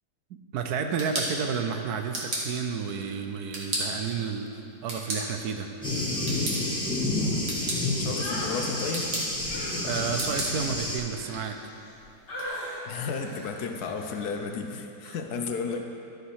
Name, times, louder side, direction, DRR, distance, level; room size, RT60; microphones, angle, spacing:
voice 1, 0.5-5.7 9.8-11.6 15.0-15.1, right 6 dB, 70° right, 6 dB, 1.1 m, -31 dB
sound 1, 0.7-12.5, right 1 dB, 45° right, 2.0 m, -37 dB
Thunder, 5.8-11.0, left 2 dB, 5° left, 1.6 m, -29 dB
voice 2, 8.0-9.1 12.9-15.9, left 5 dB, 70° left, 4 dB, 1.2 m, -32 dB
sound 2, 8.2-8.6 9.5-11.9 12.3-12.8 13.2-13.5 14.0-14.2, equal, 90° left, 2.6 m, -39 dB
12.5 x 6.5 x 4.7 m, 2.8 s
omnidirectional pair, 1.8 m